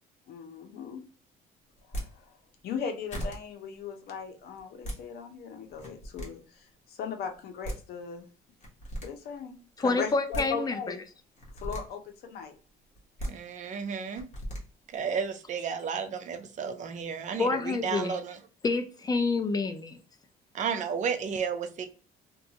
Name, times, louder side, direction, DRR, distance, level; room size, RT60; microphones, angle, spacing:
voice 1, 0.3-1.0 2.0-2.1 2.6-6.4 6.9-8.3 9.0-9.5 9.8-11.0 11.6-12.5, left 6 dB, 70° left, 0.7 m, -38 dB
sound 1, 1.8-2.1 2.8-2.9 3.1-3.4 4.6-5.0 5.7-6.3 7.3-7.4 7.6-7.8 8.6-9.1 10.1-10.5 11.3-11.8 13.0-13.3 14.1-14.6, equal, 45° left, 1.1 m, -36 dB
voice 2, 9.8-11.0 17.4-18.2 18.6-20.0, left 3 dB, 25° left, 0.4 m, -28 dB
voice 3, 13.3-14.2 14.9-18.4 20.5-21.9, right 6 dB, 45° right, 0.5 m, -32 dB
2.5 x 2.3 x 2.8 m
cardioid pair, 110°, 17 cm